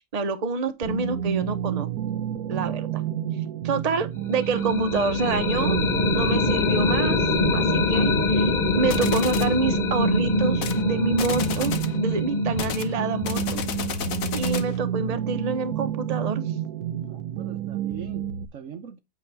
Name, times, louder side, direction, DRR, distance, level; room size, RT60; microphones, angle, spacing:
voice 1, 0.0-1.9 2.5-3.0 3.6-5.9 6.1-7.3 7.5-11.7 12.0-13.6 14.3-16.5, right 4 dB, 30° right, 1.0 m, -27 dB
sound 1, 0.8-18.5, right 10 dB, 85° right, 1.2 m, -29 dB
sound 2, 4.3-14.1, left 4 dB, 40° left, 0.7 m, -25 dB
sound 3, 8.9-9.6 10.5-10.8 11.1-12.0 12.6-14.8, left 8 dB, 65° left, 1.3 m, -31 dB
voice 2, 16.9-19.0, right 7 dB, 60° right, 1.1 m, -42 dB
8.2 x 6.1 x 3.4 m
omnidirectional pair, 1.6 m